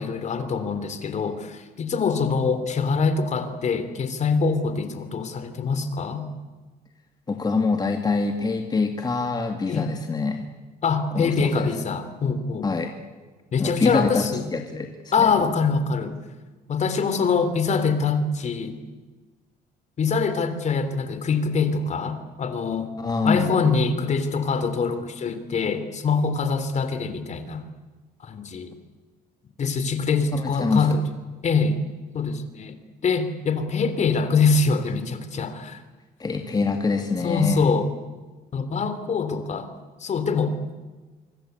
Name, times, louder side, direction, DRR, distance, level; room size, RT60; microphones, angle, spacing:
voice 1, 0.0-6.3 9.7-9.9 10.8-12.7 13.5-14.5 15.1-16.2 16.7-18.8 20.0-22.9 23.2-27.6 28.2-28.7 29.6-31.0 31.4-31.8 32.1-32.8 33.0-35.8 37.2-37.9 38.5-39.7 40.0-40.5, left 4 dB, 45° left, 10 dB, 3.4 m, -24 dB
voice 2, 7.3-10.5 11.1-11.7 12.6-12.9 13.6-14.2 14.5-15.3 23.0-23.6 30.3-31.0 36.2-37.6, left 4 dB, 25° left, 4 dB, 2.4 m, -25 dB
25.0 x 24.5 x 8.2 m, 1.3 s
cardioid pair, 110°, 17 cm